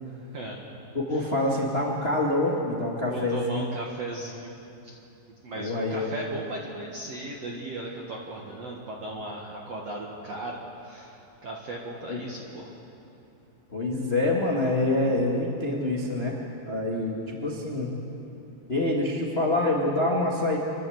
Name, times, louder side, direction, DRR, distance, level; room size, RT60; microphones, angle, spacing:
voice 1, 0.9-3.6 5.5-6.1 12.1-12.2 13.7-16.4 16.7-17.9 18.7-20.6, left 2 dB, 70° left, -2 dB, 0.5 m, -26 dB
voice 2, 3.1-4.6 4.8-5.0 5.4-12.7, right 2 dB, 55° right, -2 dB, 2.1 m, -37 dB
29.0 x 12.0 x 7.9 m, 2.9 s
omnidirectional pair, 4.7 m